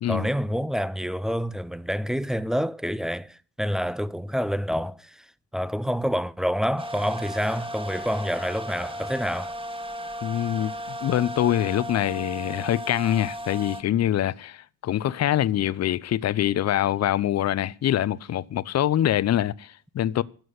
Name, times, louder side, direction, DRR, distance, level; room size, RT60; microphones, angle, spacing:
voice 1, 0.1-5.3 5.5-9.6, equal, ahead, 0.6 m, -27 dB
sound 1, 6.8-13.8, equal, 20° right, 1.6 m, -35 dB
voice 2, 10.2-10.7 11.0-20.2, left 12 dB, 60° left, 0.7 m, -24 dB
13.0 x 6.2 x 9.4 m
cardioid pair, 90°, 30 cm